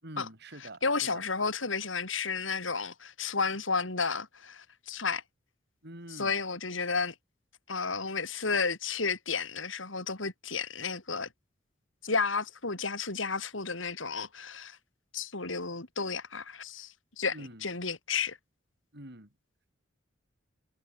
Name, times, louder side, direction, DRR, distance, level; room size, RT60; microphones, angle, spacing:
voice 1, 0.0-0.9 1.1-1.2 5.8-6.4 17.3-17.7 18.9-19.3, right 1 dB, 60° right, 7.7 m, -45 dB
voice 2, 0.8-5.2 6.1-7.1 7.7-11.3 12.0-14.8 15.1-18.4, left 4 dB, 85° left, 4.3 m, -32 dB
head